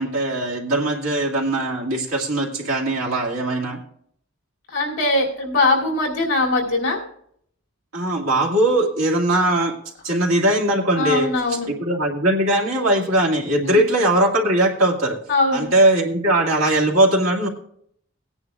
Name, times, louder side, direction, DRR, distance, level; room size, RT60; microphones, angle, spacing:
voice 1, 0.0-3.8 7.9-9.8 10.0-15.2 15.5-17.5, right 1 dB, 75° right, -2 dB, 2.1 m, -20 dB
voice 2, 4.7-7.0 11.0-11.7 13.7-13.8 15.3-15.7, left 2 dB, 60° left, -2 dB, 2.8 m, -21 dB
19.0 x 9.9 x 2.4 m, 0.67 s
head